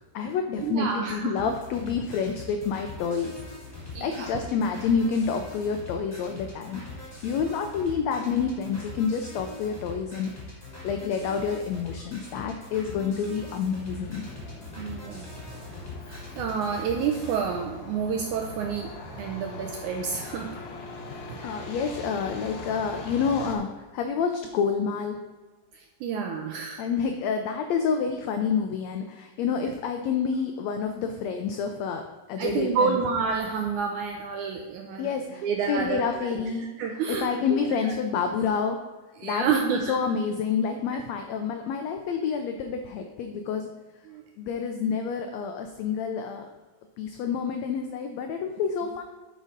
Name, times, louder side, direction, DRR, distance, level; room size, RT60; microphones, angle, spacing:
voice 1, 0.0-3.4 4.0-10.3 10.8-14.2 21.1-25.2 26.8-33.0 35.0-36.7 37.1-38.8 39.2-43.7 44.4-46.5 47.0-49.0, left 6 dB, 85° left, 6 dB, 1.5 m, -28 dB
voice 2, 0.6-1.5 3.8-4.3 14.8-15.4 16.1-18.9 19.2-20.6 21.3-21.5 25.7-26.8 32.4-36.4 36.8-37.6 37.8-38.3 39.2-40.0 44.1-44.2, right 6 dB, 75° right, 3 dB, 1.9 m, -29 dB
sound 1, 1.4-17.4, left 3 dB, 5° left, 2.0 m, -42 dB
Truck, 13.9-23.6, left 2 dB, 65° left, 1.2 m, -41 dB
9.2 x 5.0 x 5.3 m, 1.3 s
omnidirectional pair, 3.8 m